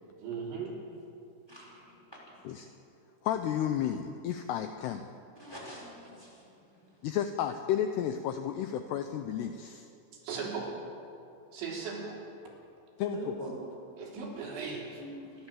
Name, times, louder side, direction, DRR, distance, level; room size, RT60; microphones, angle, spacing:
voice 1, 0.2-0.7 10.1-10.7 11.5-12.2 14.0-15.0, right 5 dB, 70° right, -2 dB, 5.7 m, -37 dB
voice 2, 1.5-2.7 5.3-7.1 13.1-13.5 15.0-15.5, equal, 5° left, -5 dB, 5.7 m, -45 dB
voice 3, 3.2-5.1 7.0-9.9 13.0-13.3, left 10 dB, 85° left, 8 dB, 2.3 m, -32 dB
28.5 x 12.0 x 7.5 m, 2.7 s
omnidirectional pair, 5.6 m